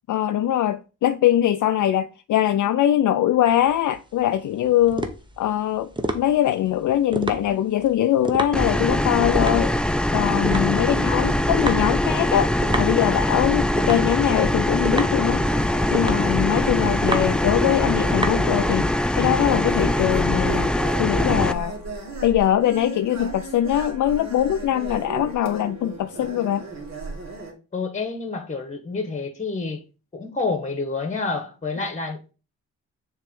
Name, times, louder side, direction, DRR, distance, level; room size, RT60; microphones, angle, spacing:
voice 1, 0.1-5.1 5.4-5.9 6.1-9.7 10.1-12.5 12.8-15.4 15.9-18.9 19.2-20.7 21.0-21.8 22.2-26.6, left 11 dB, 65° left, 0.5 m, -22 dB
sound 1, 3.5-19.0, right 1 dB, 15° right, 0.9 m, -31 dB
sound 2, 8.5-21.5, left 1 dB, 5° left, 0.4 m, -22 dB
sound 3, 15.3-27.5, right 2 dB, 55° right, 2.2 m, -36 dB
voice 2, 27.7-29.8 30.1-32.3, left 4 dB, 20° left, 1.3 m, -29 dB
6.6 x 3.2 x 5.2 m
cardioid pair, 90°, 33 cm